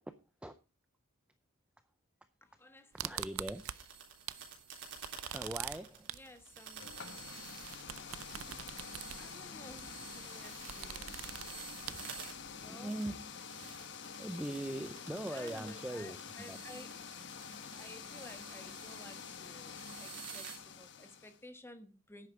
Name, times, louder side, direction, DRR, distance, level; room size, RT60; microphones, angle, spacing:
voice 1, 2.4-3.5 4.0-4.4 6.0-6.8 7.5-14.0 15.3-16.9 17.7-22.3, left 1 dB, 10° left, 1.3 m, -55 dB
voice 2, 2.9-3.6 5.3-6.1 12.7-13.1 14.2-16.2 16.5-16.6, right 1 dB, 5° right, 0.5 m, -40 dB
sound 1, 3.0-4.5 4.8-12.6, right 11 dB, 85° right, 0.5 m, -45 dB
sound 2, 3.2-20.6, right 6 dB, 60° right, 3.7 m, -51 dB
sound 3, 6.8-21.4, left 6 dB, 60° left, 1.1 m, -48 dB
10.0 x 8.4 x 5.0 m
head